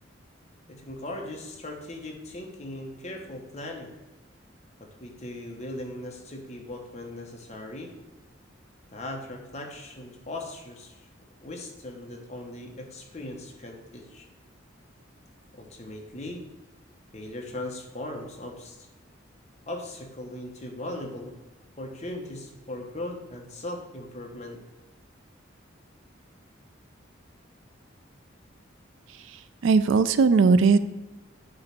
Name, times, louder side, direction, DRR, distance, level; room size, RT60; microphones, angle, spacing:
voice 1, 0.7-3.9 4.8-8.0 8.9-11.1 11.4-14.3 15.5-16.5 17.1-18.9 19.7-21.4 21.8-24.6, left 1 dB, 35° left, 1 dB, 1.0 m, -38 dB
voice 2, 29.6-30.8, right 4 dB, 70° right, 12 dB, 0.4 m, -18 dB
8.8 x 3.1 x 5.8 m, 1.1 s
head